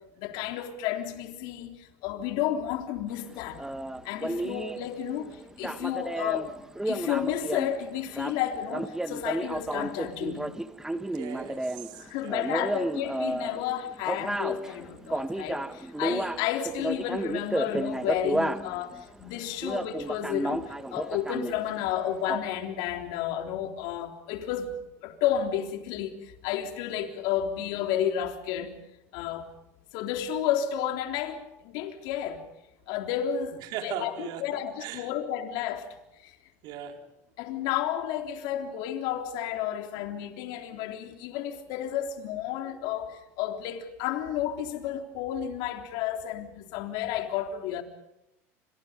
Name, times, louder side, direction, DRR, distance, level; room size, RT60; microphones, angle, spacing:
voice 1, 0.2-3.6 4.0-6.5 6.9-10.5 12.0-20.6 20.9-26.2 26.4-28.8 29.1-29.5 29.9-32.4 32.9-35.9 36.2-36.3 37.4-47.8, left 10 dB, 70° left, 3.6 m, -32 dB
sound 1, 3.1-19.0 19.3-19.4 19.6-21.9 22.2-22.4, right 1 dB, 5° right, 1.5 m, -32 dB
voice 2, 11.1-12.7 33.6-34.5 34.8-35.1 36.6-37.0, right 9 dB, 65° right, 4.2 m, -39 dB
29.5 x 26.5 x 5.2 m
supercardioid pair, 100°, 8 cm